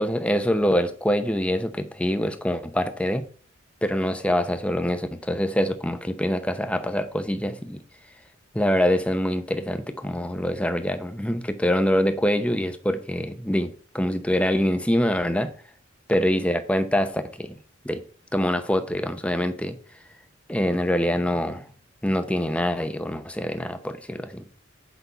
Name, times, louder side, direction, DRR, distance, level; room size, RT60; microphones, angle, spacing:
voice 1, 0.0-3.2 3.8-7.8 8.5-15.5 16.1-17.5 17.8-18.0 18.3-19.7 20.5-21.7 22.0-24.4, equal, 5° left, 0.7 m, -25 dB
8.4 x 5.5 x 5.4 m
head